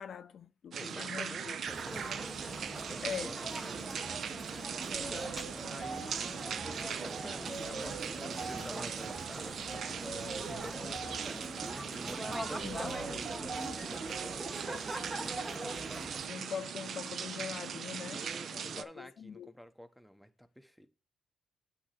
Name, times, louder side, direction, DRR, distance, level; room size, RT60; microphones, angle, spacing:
voice 1, 0.0-1.5 3.0-3.3 12.6-12.9 16.2-18.2 18.5-19.5, left 7 dB, 65° left, 0.3 m, -42 dB
voice 2, 0.7-2.2 2.5-5.3 5.7-14.7 18.1-20.9, equal, ahead, 0.9 m, -49 dB
sound 1, 0.7-18.8, right 7 dB, 70° right, 0.4 m, -40 dB
sound 2, 1.7-16.3, right 1 dB, 25° right, 1.3 m, -42 dB
sound 3, 4.0-4.2 4.7-14.4, right 3 dB, 50° right, 1.6 m, -45 dB
8.4 x 2.9 x 5.8 m
supercardioid pair, 50°, 0 cm